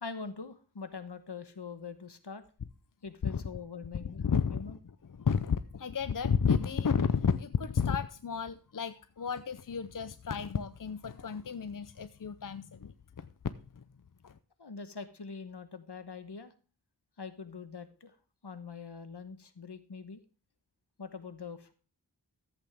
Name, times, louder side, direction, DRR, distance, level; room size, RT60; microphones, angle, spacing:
voice 1, 0.0-2.4 3.0-4.2 4.5-4.8 14.6-16.5 17.2-18.2 18.4-20.2 21.0-21.7, left 5 dB, 70° left, 10 dB, 1.2 m, -43 dB
voice 2, 3.9-4.8 5.1-13.3 13.8-13.9 14.2-14.3, left 6 dB, 50° left, 12 dB, 0.6 m, -32 dB
14.0 x 8.2 x 3.5 m, 0.37 s
wide cardioid pair, 45°, 42 cm